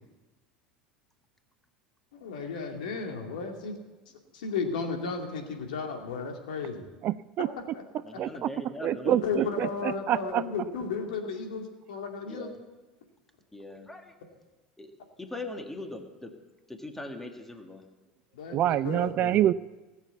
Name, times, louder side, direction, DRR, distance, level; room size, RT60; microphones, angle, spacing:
voice 1, 2.1-3.7 4.3-6.9 7.7-7.8 9.1-12.5 18.3-19.4, left 5 dB, 65° left, 3 dB, 2.4 m, -34 dB
voice 2, 7.0-7.5 8.2-8.5 8.8-10.4 18.5-19.5, right 12 dB, 40° right, 17 dB, 0.4 m, -26 dB
voice 3, 8.0-9.5 12.2-12.6 13.5-14.1 14.8-14.9 15.2-16.3 16.7-17.9, left 2 dB, 5° left, 5 dB, 1.8 m, -41 dB
18.5 x 7.3 x 8.3 m, 1.2 s
figure-of-eight pair, 75°, 5 cm